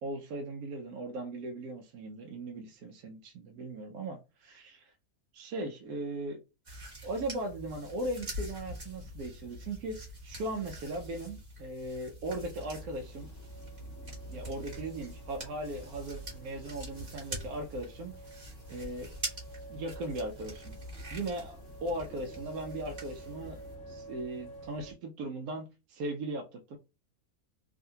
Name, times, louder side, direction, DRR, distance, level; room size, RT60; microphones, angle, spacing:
voice 1, 0.0-4.9 5.3-6.4 7.0-13.3 14.3-18.1 18.7-19.1 19.7-20.7 21.1-23.6 23.9-26.8, right 1 dB, 90° right, 1.1 m, -38 dB
sound 1, 6.6-23.7, right 1 dB, 30° right, 1.3 m, -44 dB
sound 2, 12.6-24.9, right 1 dB, 60° left, 0.6 m, -49 dB
3.6 x 2.5 x 2.7 m
omnidirectional pair, 1.5 m